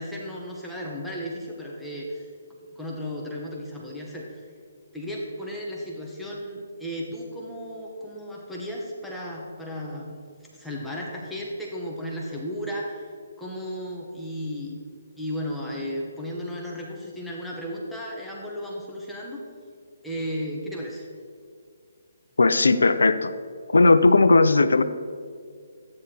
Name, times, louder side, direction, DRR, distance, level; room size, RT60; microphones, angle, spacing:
voice 1, 0.0-2.3 2.7-4.4 4.9-10.2 10.5-14.8 15.1-19.4 20.0-21.1, equal, 5° left, -4 dB, 1.4 m, -34 dB
voice 2, 22.4-23.3 23.7-24.8, left 3 dB, 75° left, 13 dB, 0.7 m, -17 dB
12.5 x 9.5 x 4.6 m, 2.1 s
figure-of-eight pair, 140°, 0 cm